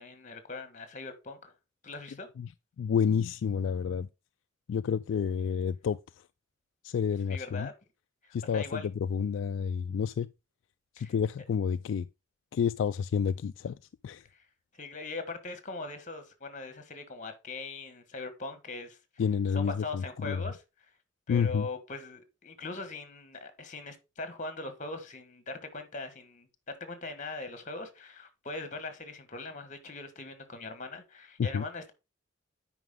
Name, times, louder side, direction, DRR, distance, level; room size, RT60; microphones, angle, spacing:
voice 1, 0.0-1.5 1.8-2.3 7.3-7.7 8.2-8.9 11.0-11.1 14.3-14.5 14.7-19.0 19.5-20.6 21.3-31.9, left 3 dB, 40° left, 1.4 m, -41 dB
voice 2, 2.8-4.1 4.7-6.0 6.8-7.7 8.3-10.3 10.9-12.1 12.5-13.8 14.0-14.2 19.2-20.4 21.3-21.7 31.4-31.6, left 7 dB, 65° left, 0.3 m, -29 dB
9.4 x 4.9 x 3.6 m
head